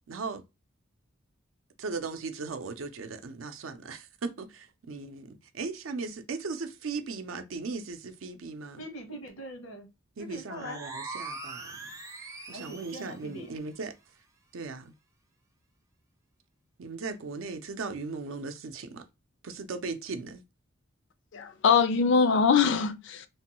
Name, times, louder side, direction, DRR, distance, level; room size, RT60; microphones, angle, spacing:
voice 1, 0.1-0.4 1.8-8.9 10.2-12.0 12.5-13.9 14.5-14.9 16.8-19.0 19.4-20.4, right 4 dB, 80° right, 0.5 m, -37 dB
voice 2, 8.8-9.9 10.2-10.8 12.5-13.5, equal, 80° left, 0.9 m, -42 dB
sound 1, 10.5-13.2, right 3 dB, 15° right, 0.4 m, -41 dB
voice 3, 21.3-23.3, left 5 dB, 60° left, 0.4 m, -23 dB
3.1 x 2.2 x 2.9 m
head